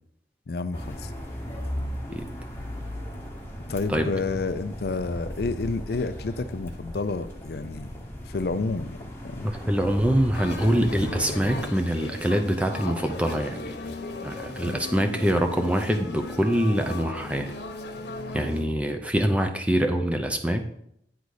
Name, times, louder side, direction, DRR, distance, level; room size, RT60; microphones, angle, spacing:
voice 1, 0.5-1.1 3.7-7.9 8.2-9.0 9.2-9.5 14.6-14.8, left 3 dB, 65° left, 12 dB, 0.5 m, -30 dB
sound 1, 0.7-11.6, equal, 15° left, 1.1 m, -37 dB
voice 2, 9.4-17.6 18.3-20.7, equal, 5° right, 5 dB, 0.6 m, -25 dB
sound 2, 10.3-18.6, left 2 dB, 80° left, 1.1 m, -37 dB
9.3 x 4.0 x 4.9 m, 0.73 s
head